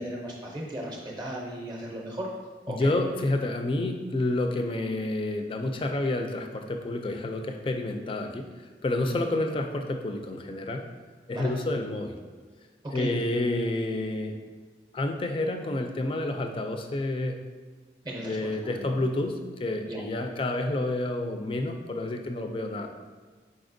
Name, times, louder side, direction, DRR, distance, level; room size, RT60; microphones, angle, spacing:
voice 1, 0.0-2.3 2.7-2.9 9.0-9.2 11.3-11.5 12.9-13.2 18.0-19.0 19.9-20.0, right 1 dB, 25° right, -2 dB, 0.6 m, -36 dB
voice 2, 2.7-8.5 8.8-10.9 11.3-12.2 12.9-14.4 14.9-17.5 18.2-22.9, left 2 dB, 30° left, 4 dB, 0.3 m, -29 dB
4.9 x 4.1 x 2.6 m, 1.4 s
head